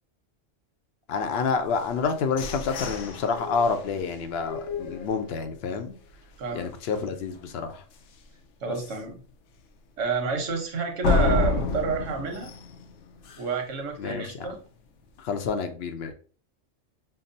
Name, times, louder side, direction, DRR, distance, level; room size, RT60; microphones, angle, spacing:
voice 1, 1.1-5.9 6.5-7.8 14.0-14.5 15.2-16.1, left 5 dB, 65° left, 7 dB, 0.7 m, -28 dB
sound 1, 1.7-5.6 6.1-6.2 6.6-7.0 7.3-7.4 7.9-8.0 11.0-13.7, left 3 dB, 85° left, 1.0 m, -30 dB
voice 2, 6.4-6.7 7.0-7.1 8.6-9.2 10.0-12.5 13.4-14.6, right 5 dB, 90° right, 3 dB, 1.2 m, -29 dB
5.7 x 2.0 x 2.6 m, 0.41 s
omnidirectional pair, 1.2 m